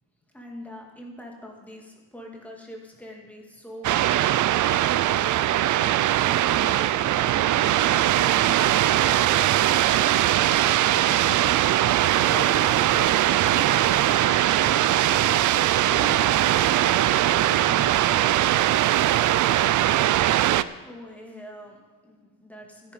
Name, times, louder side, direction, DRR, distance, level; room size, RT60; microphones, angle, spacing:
voice 1, 0.3-9.6 20.8-22.9, left 1 dB, 5° left, -1 dB, 2.4 m, -44 dB
sound 1, 3.8-20.6, right 13 dB, 60° right, 0.5 m, -21 dB
voice 2, 10.8-11.6 12.2-13.1 13.4-15.4 15.8-18.3, left 3 dB, 25° left, 0 dB, 1.6 m, -40 dB
13.5 x 10.5 x 5.4 m, 1.4 s
cardioid pair, 140°, 35 cm